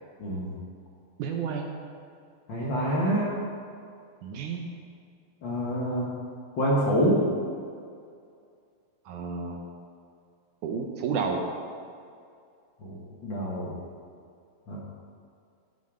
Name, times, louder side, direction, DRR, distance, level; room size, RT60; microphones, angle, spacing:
voice 1, 0.2-0.5 2.5-3.3 5.4-6.1 6.6-7.2 12.8-13.7 14.7-14.8, equal, 80° left, -6 dB, 1.0 m, -26 dB
voice 2, 1.2-1.8 4.2-4.7 9.1-9.6 10.6-11.5, right 5 dB, 75° right, 3 dB, 1.8 m, -31 dB
16.0 x 6.5 x 4.9 m, 2.3 s
omnidirectional pair, 4.4 m